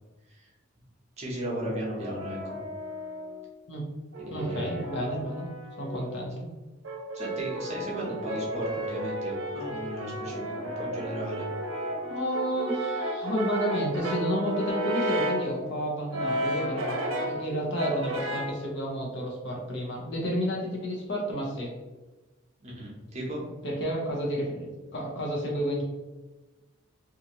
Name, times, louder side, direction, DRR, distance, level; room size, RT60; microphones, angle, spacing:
voice 1, 1.2-2.6 4.2-4.8 7.1-11.5 22.6-23.4, right 1 dB, 30° right, -3 dB, 0.7 m, -36 dB
Brass instrument, 1.4-3.4 4.1-6.2 6.8-15.5 16.1-17.5 17.8-18.6, right 1 dB, 75° right, 0.6 m, -33 dB
voice 2, 4.3-5.5 5.8-6.5 12.1-21.7 23.6-25.8, equal, 60° left, -2 dB, 0.7 m, -31 dB
2.7 x 2.5 x 2.8 m, 1.2 s
head